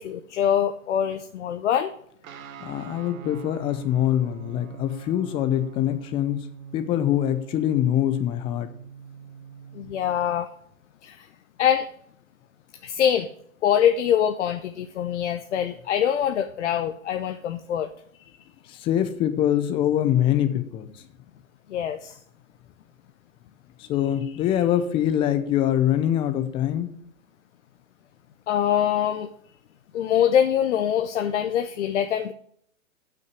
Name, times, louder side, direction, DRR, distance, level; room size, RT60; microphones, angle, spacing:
voice 1, 0.0-1.9 9.7-10.5 11.0-11.3 11.6-11.9 12.8-13.3 13.6-17.9 21.7-22.2 28.5-29.3 29.9-32.3, left 9 dB, 55° left, 8 dB, 0.8 m, -24 dB
Guitar, 2.2-10.3, right 7 dB, 70° right, 1.2 m, -43 dB
voice 2, 2.6-6.5 6.7-8.7 18.7-21.1 23.8-26.9, left 11 dB, 15° left, 10 dB, 0.5 m, -24 dB
7.8 x 6.1 x 7.7 m, 0.66 s
hypercardioid pair, 130°, 42 cm